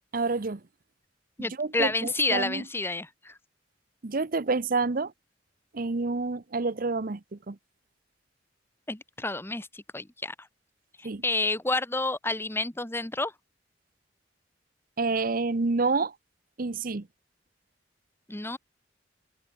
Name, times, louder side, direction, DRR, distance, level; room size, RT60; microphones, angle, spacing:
voice 1, 0.1-0.6 1.4-2.6 4.0-5.1 5.7-7.6 11.0-11.2 15.0-16.1 16.6-17.1, right 3 dB, 50° right, 0.8 m, -28 dB
voice 2, 1.4-3.4 8.9-10.3 11.0-13.3 18.3-18.6, left 2 dB, 15° left, 1.3 m, -30 dB
head